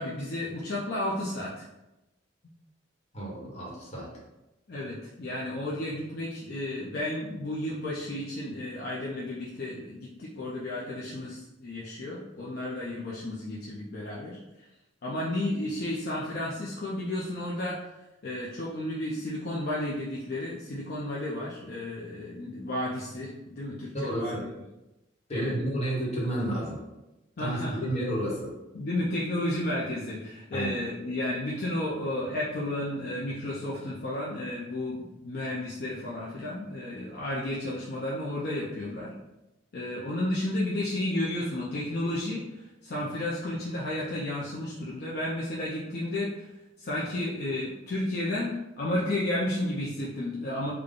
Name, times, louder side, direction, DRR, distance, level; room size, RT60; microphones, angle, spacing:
voice 1, 0.0-1.6 4.7-14.4 15.0-18.0 18.2-24.5 25.3-25.5 27.4-27.9 28.7-39.1 39.7-46.5 46.8-50.7, left 1 dB, 55° left, -6 dB, 0.6 m, -32 dB
voice 2, 3.1-4.1 23.9-24.5 25.3-26.8 27.4-28.5 30.5-30.8, right 1 dB, 35° left, -5 dB, 1.1 m, -31 dB
3.7 x 2.2 x 3.6 m, 0.97 s
head